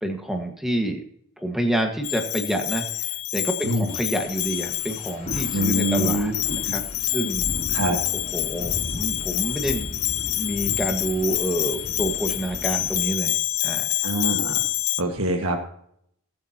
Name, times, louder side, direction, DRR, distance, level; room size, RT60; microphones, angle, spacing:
voice 1, 0.0-1.0 1.4-6.3 6.6-7.4 8.1-10.0 10.3-13.4 13.6-13.9, right 1 dB, ahead, 3 dB, 1.6 m, -28 dB
Bell, 2.0-15.0, left 17 dB, 75° left, 0.5 m, -27 dB
voice 2, 3.6-3.9 5.5-6.3 6.7-6.8 7.7-8.0 14.0-14.6 15.0-15.6, right 1 dB, 75° right, 3 dB, 1.8 m, -24 dB
sound 1, 3.9-13.1, left 1 dB, 35° left, 5.8 m, -36 dB
22.0 x 8.8 x 3.0 m, 0.68 s
head